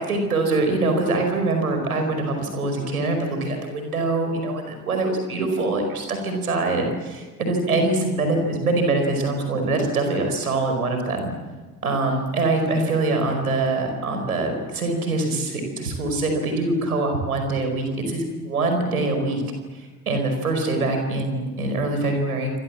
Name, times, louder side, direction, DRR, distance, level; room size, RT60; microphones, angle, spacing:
voice 1, 0.0-11.3 11.8-19.4 19.7-22.5, right 2 dB, 80° right, 5 dB, 5.2 m, -24 dB
28.0 x 26.5 x 7.5 m, 1.3 s
figure-of-eight pair, 55°, 43 cm